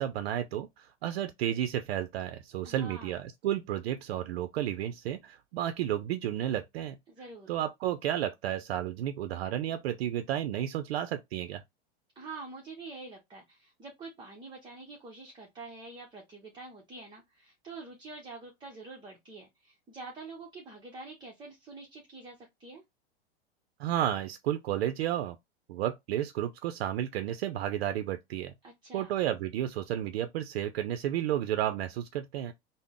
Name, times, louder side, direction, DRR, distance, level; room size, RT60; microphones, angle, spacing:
voice 1, 0.0-7.0 7.5-11.6 23.8-25.4 25.7-28.5 28.9-32.5, right 11 dB, 75° right, 0.5 m, -32 dB
voice 2, 2.6-3.1 7.1-7.5 12.2-22.8 28.6-29.1, right 3 dB, 15° right, 0.7 m, -46 dB
3.6 x 2.0 x 3.5 m
hypercardioid pair, 130°, 31 cm